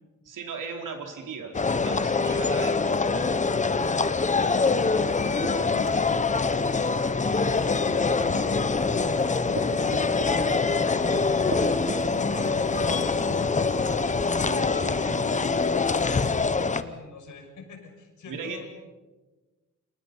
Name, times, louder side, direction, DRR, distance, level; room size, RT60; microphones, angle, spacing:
voice 1, 0.2-3.8 14.5-15.4 18.3-18.6, right 5 dB, 85° right, 3 dB, 4.4 m, -38 dB
sound 1, 1.5-16.8, left 4 dB, 25° left, 0.9 m, -24 dB
sound 2, 3.5-14.6, right 2 dB, 45° right, 4.6 m, -40 dB
voice 2, 4.5-7.0 7.5-8.4 8.8-11.8 12.2-14.1 14.6-18.7, left 4 dB, 75° left, 2 dB, 6.3 m, -44 dB
29.5 x 27.0 x 5.5 m, 1.2 s
wide cardioid pair, 165°, 31 cm